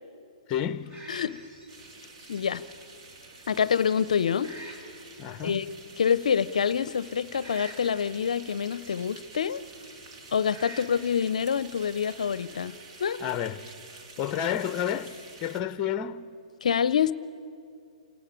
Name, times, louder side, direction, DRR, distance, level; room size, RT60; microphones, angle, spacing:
voice 1, 0.5-1.0 5.2-5.6 13.2-13.7 14.2-16.3, left 9 dB, 30° left, 0.7 m, -30 dB
sound 1, 0.6-12.9, right 1 dB, 30° right, 3.5 m, -51 dB
sound 2, 1.7-15.6, right 3 dB, 50° right, 2.4 m, -49 dB
voice 2, 2.3-2.6 3.5-4.5 5.4-5.7 6.0-9.6 10.3-13.2 16.6-17.1, left 7 dB, 70° left, 0.5 m, -26 dB
28.0 x 11.5 x 8.8 m
hypercardioid pair, 130°, 4 cm